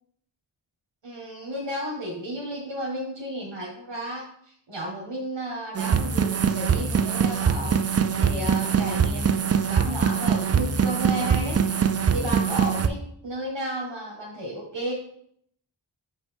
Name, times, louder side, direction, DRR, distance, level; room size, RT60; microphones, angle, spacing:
voice 1, 1.0-7.8 8.2-11.6 12.1-14.9, right 1 dB, 90° right, -3 dB, 1.6 m, -33 dB
sound 1, 5.7-12.9, right 7 dB, 35° right, 0.4 m, -23 dB
6.7 x 5.4 x 3.5 m, 0.67 s
wide cardioid pair, 45°, 43 cm